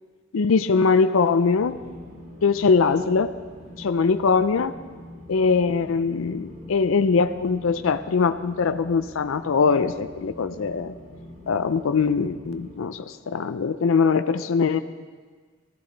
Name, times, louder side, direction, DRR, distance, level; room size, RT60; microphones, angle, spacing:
voice 1, 0.3-1.8 2.4-3.3 3.8-4.7 5.3-11.0 11.5-14.8, left 5 dB, 75° left, 11 dB, 0.5 m, -22 dB
sound 1, 1.5-12.8, equal, 40° right, 2.4 m, -43 dB
18.0 x 13.5 x 3.9 m, 1.5 s
head